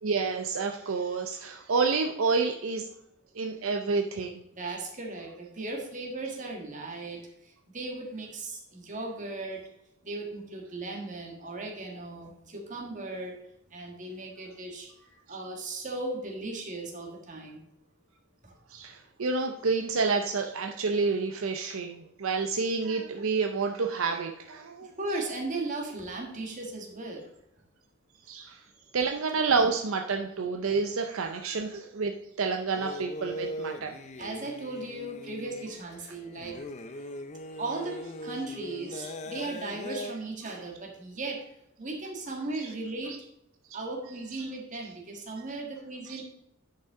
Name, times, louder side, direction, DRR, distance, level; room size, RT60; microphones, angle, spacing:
voice 1, 0.0-2.9 3.4-4.4 18.7-24.9 28.3-28.6 28.9-32.1 32.4-34.0 39.9-40.0 42.6-42.7 44.3-44.5 46.1-46.2, right 4 dB, 65° right, 4 dB, 0.6 m, -29 dB
voice 2, 4.5-7.2 7.7-9.6 10.0-13.3 13.7-14.9 15.3-17.6 18.4-18.5 25.0-27.2 34.2-36.6 37.6-41.4 41.8-43.1 43.7-46.2, right 2 dB, 35° right, 0 dB, 1.7 m, -37 dB
sound 1, 32.7-40.1, left 1 dB, 30° left, 0.5 m, -40 dB
10.0 x 5.6 x 3.6 m, 0.80 s
head